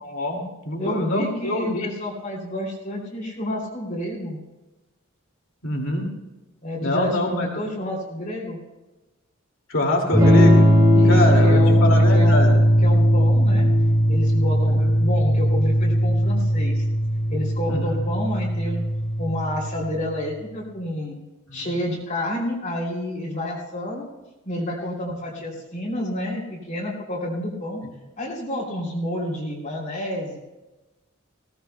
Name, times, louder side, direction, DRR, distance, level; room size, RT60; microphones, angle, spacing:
voice 1, 0.0-1.9 5.6-6.1 6.8-7.5 9.7-10.7 11.0-12.6 13.6-13.7 14.7-14.8 17.7-18.0 21.5-21.7, left 1 dB, 70° left, 1 dB, 2.4 m, -25 dB
voice 2, 0.8-4.4 6.6-8.6 10.9-12.4 12.8-13.7 14.1-16.8 17.3-18.8 19.2-21.2 21.5-24.1 24.4-27.8 28.2-30.4, left 1 dB, 40° left, -6 dB, 3.0 m, -29 dB
Electric guitar / Strum, 10.1-19.9, equal, 20° right, 3.2 m, -18 dB
19.5 x 17.5 x 2.3 m, 1.1 s
head